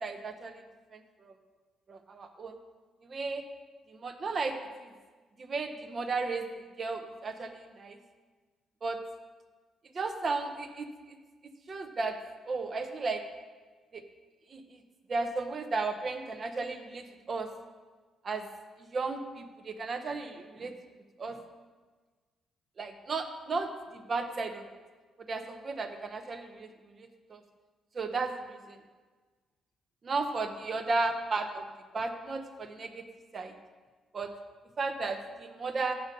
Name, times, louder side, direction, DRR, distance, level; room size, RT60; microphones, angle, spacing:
voice 1, 0.0-0.5 0.9-1.0 1.3-1.4 1.9-2.5 3.1-3.4 4.0-4.5 5.4-6.4 6.8-8.0 8.8-9.0 9.9-10.9 11.7-12.1 12.5-13.2 13.9-14.0 14.5-14.6 15.1-17.5 18.2-18.4 18.9-20.7 21.2-21.4 22.8-24.6 25.3-27.4 27.9-28.8 30.0-31.6 31.9-33.0 33.3-33.5 34.1-34.3 34.8-35.9, right 3 dB, 40° right, 7 dB, 0.8 m, -34 dB
7.8 x 6.6 x 5.4 m, 1.4 s
cardioid pair, 90°, 0 cm